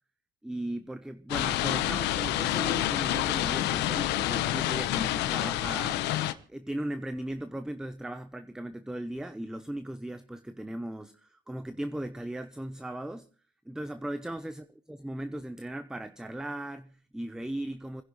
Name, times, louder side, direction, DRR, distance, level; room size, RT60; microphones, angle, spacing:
voice 1, 0.4-6.1 6.5-13.3 13.7-18.0, right 1 dB, 5° right, 0.8 m, -37 dB
sound 1, 1.3-6.3, left 13 dB, 90° left, 1.0 m, -28 dB
30.0 x 11.0 x 3.1 m
cardioid pair, 110°, 17 cm